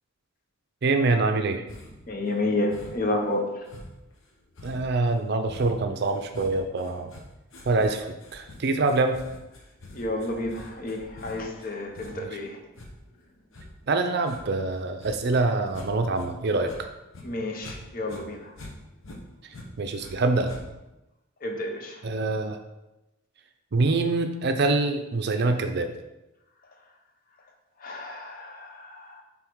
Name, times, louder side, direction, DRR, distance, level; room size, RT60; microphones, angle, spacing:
voice 1, 0.8-1.6 4.6-7.1 7.7-8.1 8.3-9.2 12.1-12.3 13.9-16.9 19.8-20.5 22.0-22.6 23.7-25.9, right 3 dB, 50° right, 6 dB, 0.5 m, -25 dB
sound 1, 1.7-2.1 2.7-3.2 3.7-16.3 16.6-17.8 18.0-20.1 20.5-21.0, left 1 dB, 70° left, 1.0 m, -45 dB
voice 2, 2.1-3.5 9.9-12.6 17.2-18.5 21.4-22.0 27.8-29.2, left 2 dB, 40° left, 3 dB, 0.8 m, -30 dB
5.7 x 3.7 x 4.6 m, 0.96 s
head